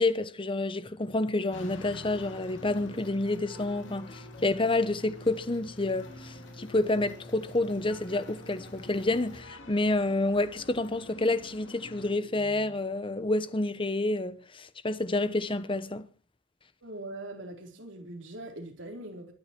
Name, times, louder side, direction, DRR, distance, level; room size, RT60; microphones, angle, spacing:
voice 1, 0.0-16.0, left 2 dB, 25° left, 1.0 m, -29 dB
sound 1, 1.5-12.1, left 2 dB, 85° left, 2.7 m, -51 dB
sound 2, 1.6-9.4, left 1 dB, 70° left, 5.1 m, -49 dB
sound 3, 1.6-12.8, equal, 45° left, 5.0 m, -52 dB
voice 2, 16.8-19.3, right 1 dB, 75° right, 3.9 m, -41 dB
22.0 x 10.5 x 4.5 m
head